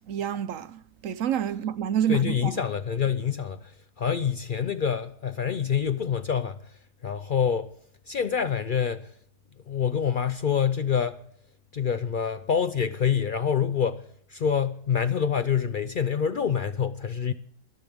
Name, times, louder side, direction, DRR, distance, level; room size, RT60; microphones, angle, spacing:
voice 1, 0.0-2.6, right 9 dB, 65° right, 1.0 m, -28 dB
voice 2, 2.1-7.7 8.1-9.1 9.7-11.2 11.7-17.3, left 7 dB, 75° left, 0.4 m, -26 dB
23.5 x 10.5 x 3.5 m
omnidirectional pair, 1.6 m